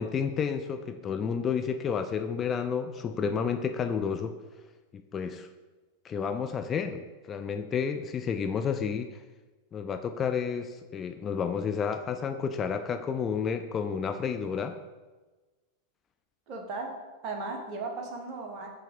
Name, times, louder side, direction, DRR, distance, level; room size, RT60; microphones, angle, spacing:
voice 1, 0.0-4.3 4.9-5.5 6.0-9.2 9.7-14.8, left 6 dB, 25° left, 7 dB, 0.3 m, -31 dB
voice 2, 16.5-16.9 17.2-18.7, right 3 dB, 40° right, 3 dB, 1.2 m, -36 dB
7.3 x 3.4 x 5.3 m, 1.2 s
figure-of-eight pair, 90°, 0 cm